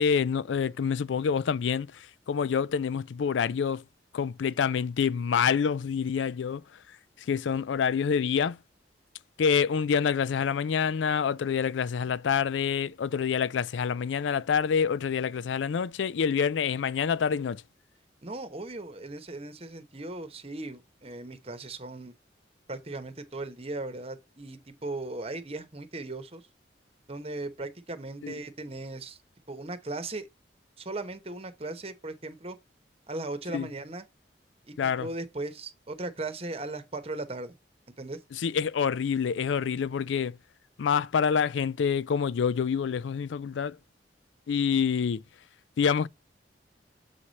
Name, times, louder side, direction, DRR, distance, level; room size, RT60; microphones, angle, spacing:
voice 1, 0.0-3.8 4.1-6.6 7.3-8.6 9.4-17.6 28.2-28.3 33.5-33.7 34.8-35.1 38.3-40.4 40.8-43.8 44.5-45.2 45.8-46.1, left 6 dB, 85° left, 0.4 m, -27 dB
voice 2, 18.2-22.1 22.7-26.4 27.1-29.2 29.5-30.3 30.8-32.6 33.1-34.0 34.7-37.5 38.0-38.2, right 2 dB, 35° right, 1.0 m, -37 dB
7.1 x 4.8 x 4.1 m
head